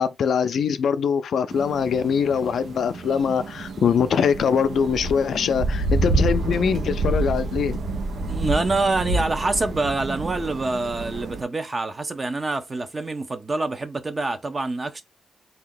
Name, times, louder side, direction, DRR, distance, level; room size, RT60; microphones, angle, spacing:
voice 1, 0.0-7.8, left 7 dB, 75° left, 0.4 m, -23 dB
sound 1, 1.5-11.4, right 2 dB, 75° right, 0.8 m, -28 dB
voice 2, 8.2-15.0, right 3 dB, 35° right, 0.8 m, -26 dB
3.7 x 2.8 x 3.8 m
cardioid pair, 80°, 0 cm